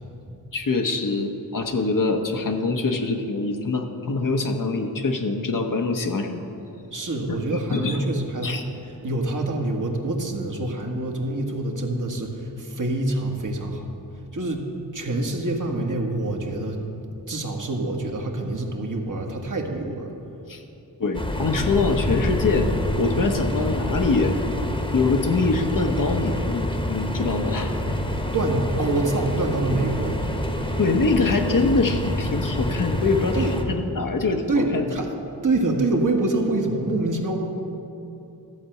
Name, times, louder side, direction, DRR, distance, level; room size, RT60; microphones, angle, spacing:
voice 1, 0.5-6.4 7.3-7.4 7.7-8.0 8.4-8.6 20.5-20.6 21.0-22.7 23.0-24.3 24.9-27.7 30.8-35.0, left 3 dB, 50° left, 4 dB, 1.0 m, -24 dB
voice 2, 6.9-13.8 14.3-14.6 14.9-16.8 17.3-20.1 28.3-30.2 33.3-33.5 34.5-35.1 35.4-37.4, right 2 dB, 45° right, 1 dB, 1.5 m, -26 dB
sound 1, 21.1-33.6, left 1 dB, 10° left, 1.2 m, -27 dB
13.0 x 4.4 x 7.7 m, 2.8 s
cardioid pair, 45°, 41 cm